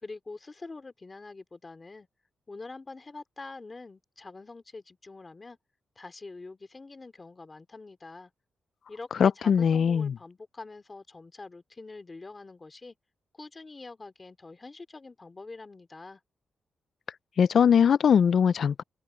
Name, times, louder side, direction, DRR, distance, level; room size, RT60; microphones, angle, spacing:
voice 1, 0.0-2.1 2.5-5.6 6.0-8.3 8.9-13.0 13.3-16.2, left 3 dB, 25° left, 2.7 m, -45 dB
voice 2, 9.2-10.1 17.4-18.8, left 7 dB, 55° left, 0.3 m, -21 dB
open air
wide cardioid pair, 160°, 0 cm